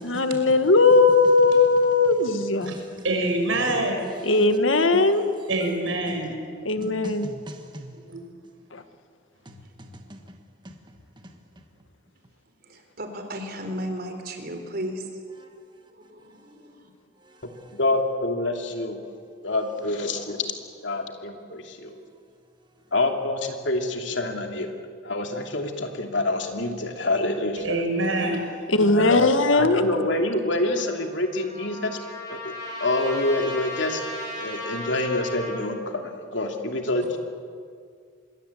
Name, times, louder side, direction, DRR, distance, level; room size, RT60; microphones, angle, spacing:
voice 1, 0.0-2.7 4.2-5.2 6.7-7.3 28.7-29.8, left 3 dB, 85° left, 9 dB, 1.8 m, -19 dB
voice 2, 2.3-3.0 4.2-4.4 4.9-5.5 6.8-8.0 9.4-10.2 10.6-10.7 11.2-11.3 15.4-15.5 17.2-17.7 21.8-22.0, right 1 dB, 25° right, 4 dB, 1.4 m, -41 dB
voice 3, 3.0-4.1 5.5-6.3 8.1-8.2 27.6-28.4, right 2 dB, 80° right, 3 dB, 6.0 m, -25 dB
voice 4, 12.7-15.1 15.9-16.9, equal, 50° right, 5 dB, 3.9 m, -35 dB
voice 5, 17.7-19.0 19.4-20.5 20.8-22.0 22.9-27.8 28.9-32.0 32.3-32.5 32.8-34.0 34.3-37.2, left 2 dB, 70° left, 4 dB, 2.8 m, -27 dB
Trumpet, 30.6-35.7, left 2 dB, 20° left, 7.4 m, -36 dB
26.5 x 22.0 x 8.6 m, 2.1 s
head